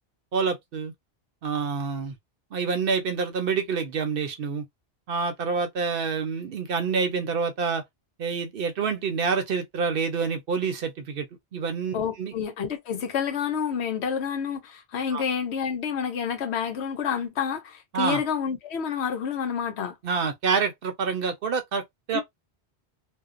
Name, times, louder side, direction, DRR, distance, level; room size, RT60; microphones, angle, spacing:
voice 1, 0.3-0.9 1.4-2.1 2.5-4.6 5.1-7.8 8.2-11.3 11.5-12.3 15.1-15.2 17.9-18.2 20.0-22.2, right 5 dB, 60° right, 0.7 m, -27 dB
voice 2, 11.9-19.9 22.1-22.2, left 7 dB, 75° left, 1.0 m, -29 dB
2.6 x 2.1 x 2.4 m
omnidirectional pair, 1.1 m